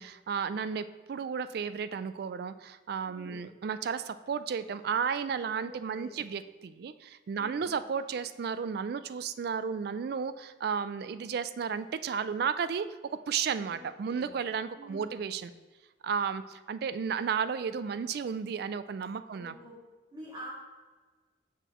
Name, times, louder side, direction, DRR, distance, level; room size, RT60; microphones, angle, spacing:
voice 1, 0.0-15.5 16.0-19.5, right 6 dB, 55° right, 13 dB, 0.3 m, -33 dB
voice 2, 3.1-3.4 5.4-6.2 7.4-7.7 13.6-14.3 14.8-15.2 19.3-19.8 20.1-20.5, right 1 dB, 25° right, -7 dB, 2.1 m, -47 dB
6.9 x 5.9 x 3.0 m, 1.3 s
head